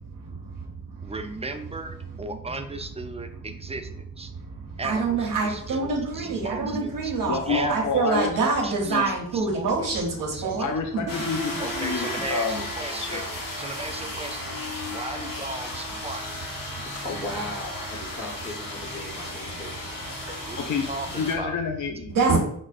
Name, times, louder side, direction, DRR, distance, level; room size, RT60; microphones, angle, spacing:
voice 1, 0.1-1.1 4.3-10.7 11.1-11.2 16.7-16.8 22.1-22.4, right 4 dB, 75° right, -2 dB, 0.8 m, -26 dB
voice 2, 1.0-4.3 4.8-7.1 7.5-8.1 8.6-10.0 10.3-10.7 11.6-13.2 13.6-14.5 14.9-16.3 20.5-21.5, right 2 dB, 20° right, 7 dB, 0.4 m, -36 dB
voice 3, 7.3-8.5 8.9-9.1 10.6-12.7 13.0-13.2 20.6-22.2, left 5 dB, 65° left, 5 dB, 0.5 m, -29 dB
sound 1, 11.1-21.4, left 1 dB, 80° left, 0.9 m, -34 dB
voice 4, 16.9-20.6, left 1 dB, 35° left, -4 dB, 0.8 m, -37 dB
6.0 x 2.1 x 2.4 m, 0.67 s
cardioid pair, 65°, 33 cm